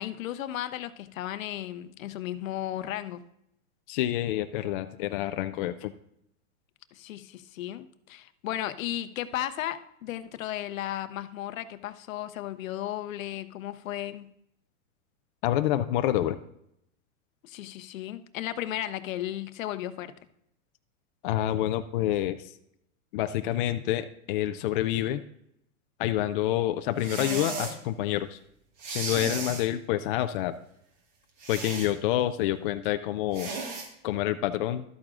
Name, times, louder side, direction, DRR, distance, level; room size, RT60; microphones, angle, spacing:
voice 1, 0.0-3.2 6.9-14.3 17.4-20.1, left 12 dB, 65° left, 12 dB, 0.8 m, -35 dB
voice 2, 3.9-5.9 15.4-16.4 21.2-22.4 23.1-25.2 26.0-28.4 28.9-30.5 31.5-33.5 34.0-34.8, left 13 dB, 40° left, 9 dB, 0.4 m, -28 dB
sound 1, 27.0-27.8 28.8-29.7 31.4-31.9 33.3-33.9, right 4 dB, 35° right, 1.7 m, -35 dB
12.5 x 8.7 x 2.5 m, 0.76 s
hypercardioid pair, 130°, 43 cm